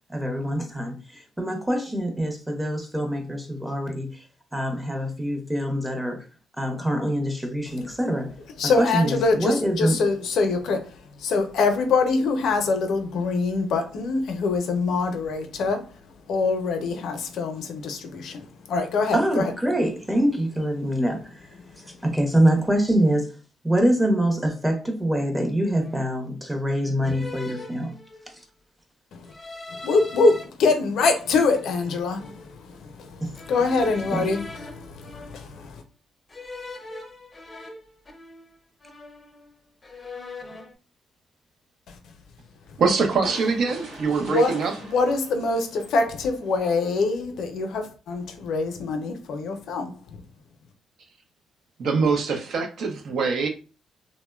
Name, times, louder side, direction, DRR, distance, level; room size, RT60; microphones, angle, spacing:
voice 1, 0.1-4.2 4.5-6.3 6.6-8.3 8.6-10.0 19.1-21.5 21.8-23.3 23.6-27.9 33.2-33.3 34.1-34.2, right 1 dB, 10° right, 0.7 m, -25 dB
voice 2, 8.6-15.8 16.3-19.5 29.1-29.3 29.7-35.8 41.9-42.0 44.2-50.0, left 3 dB, 75° left, 0.5 m, -24 dB
sound 1, 24.6-24.9 25.7-26.3 27.0-28.4 29.2-30.4 31.0-32.6 33.3-35.7 36.3-38.6 38.8-39.5 39.8-40.7, left 2 dB, 25° left, 0.5 m, -41 dB
voice 3, 42.8-44.7 51.8-53.5, right 4 dB, 65° right, 0.5 m, -23 dB
sound 2, 43.2-46.5, right 1 dB, 90° right, 1.0 m, -42 dB
2.9 x 2.1 x 2.2 m
cardioid pair, 90°, 0 cm